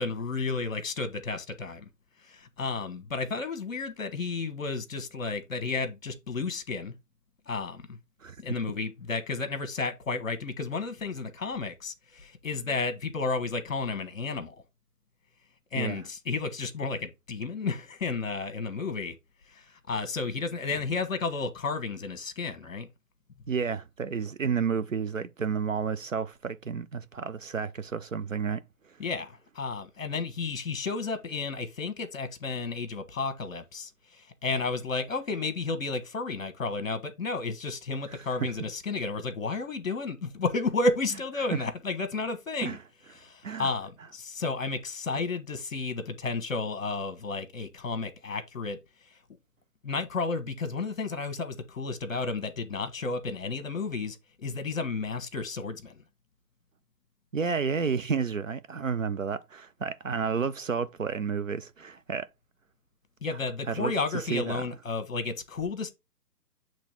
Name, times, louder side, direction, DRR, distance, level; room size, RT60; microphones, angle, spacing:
voice 1, 0.0-1.8 2.2-6.9 7.5-8.0 8.4-14.6 15.7-19.1 19.5-22.9 29.0-42.8 43.1-48.8 49.8-54.2 54.4-56.0 63.2-65.9, left 4 dB, 55° left, 1.2 m, -32 dB
voice 2, 23.5-28.6 38.4-38.5 41.5-41.6 42.6-42.8 43.4-43.7 57.3-62.3 63.7-63.9 64.3-64.6, right 6 dB, 55° right, 0.5 m, -31 dB
8.3 x 3.1 x 4.4 m
figure-of-eight pair, 145°, 48 cm